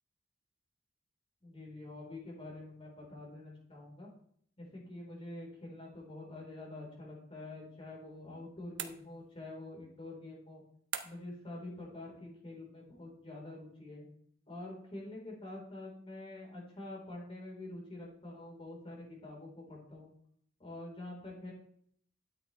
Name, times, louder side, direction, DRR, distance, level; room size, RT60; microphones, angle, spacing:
voice 1, 1.4-4.1 4.6-10.6 11.0-14.1 14.5-20.1 20.6-21.5, left 2 dB, 30° left, -2 dB, 4.3 m, -46 dB
sound 1, 8.8-9.5 10.9-11.4, right 9 dB, 75° right, 1.1 m, -42 dB
13.0 x 9.2 x 3.4 m, 0.63 s
head